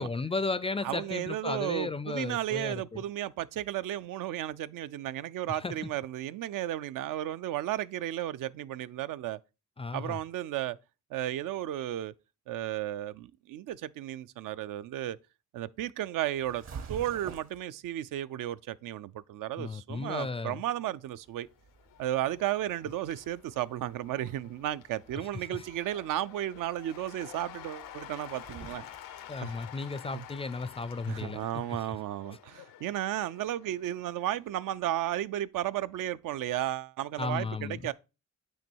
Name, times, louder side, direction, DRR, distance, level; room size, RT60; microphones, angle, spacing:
voice 1, 0.0-3.0 5.5-5.9 9.8-10.2 19.6-20.6 25.3-25.6 29.3-31.8 37.2-37.9, left 3 dB, 20° left, 0.3 m, -35 dB
voice 2, 0.8-9.4 9.9-10.8 11.1-12.1 12.5-15.2 15.5-16.6 16.9-21.5 22.0-28.8 29.4-29.5 30.1-30.2 31.1-37.9, right 12 dB, 75° right, 0.5 m, -34 dB
sound 1, 16.3-17.6 21.1-31.2, right 6 dB, 55° right, 1.0 m, -50 dB
Cheering / Applause / Crowd, 21.4-34.8, left 11 dB, 85° left, 0.6 m, -50 dB
9.0 x 3.0 x 4.5 m
cardioid pair, 105°, 32 cm